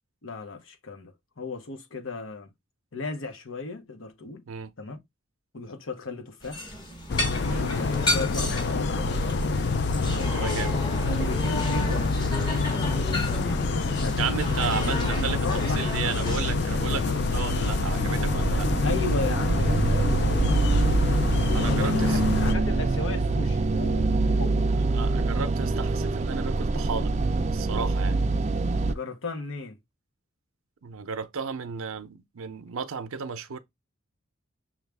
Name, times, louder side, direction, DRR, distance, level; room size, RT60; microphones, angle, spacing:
voice 1, 0.2-2.5 2.9-4.4 4.8-5.0 5.5-6.6 7.5-10.7 11.2-12.1 12.7-13.2 13.7-14.2 14.9-16.2 18.8-20.6 21.5-24.0 24.4-24.6 28.8-29.8, left 3 dB, 75° left, 0.8 m, -35 dB
sound 1, 6.4-16.4, left 1 dB, 20° left, 0.9 m, -33 dB
sound 2, 7.1-22.5, left 3 dB, 55° left, 0.4 m, -26 dB
voice 2, 10.3-10.7 14.2-18.8 21.5-22.2 24.8-27.2 27.5-28.3 30.8-33.6, right 6 dB, 90° right, 0.6 m, -34 dB
sound 3, 15.8-28.9, right 3 dB, 35° right, 0.3 m, -25 dB
6.0 x 2.4 x 3.4 m
head